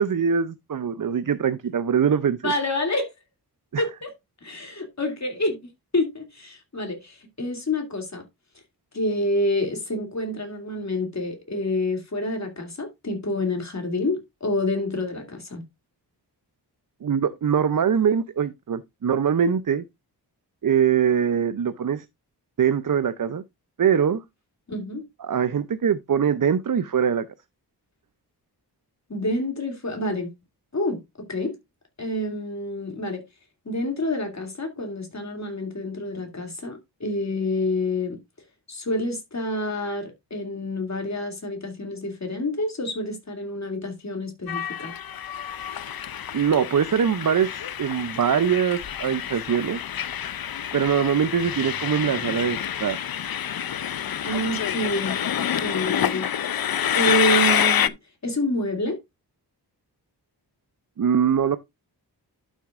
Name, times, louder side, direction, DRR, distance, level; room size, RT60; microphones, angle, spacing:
voice 1, 0.0-2.5 3.7-3.8 17.0-19.8 20.6-22.0 22.6-23.4 23.8-24.2 25.2-27.3 46.3-49.8 50.7-53.0 61.0-61.6, right 7 dB, 50° right, 0.6 m, -22 dB
voice 2, 2.4-3.1 3.8-4.1 4.4-5.6 5.9-8.2 8.9-15.6 24.7-25.0 29.1-30.3 30.7-31.5 32.0-33.2 33.6-38.2 38.7-44.9 54.2-55.2 55.5-56.2 56.5-56.7 56.9-57.9 58.2-59.0, left 1 dB, 40° left, 2.6 m, -28 dB
Train, 44.5-57.9, left 9 dB, 60° left, 0.6 m, -27 dB
11.5 x 6.3 x 2.5 m
wide cardioid pair, 95°, 41 cm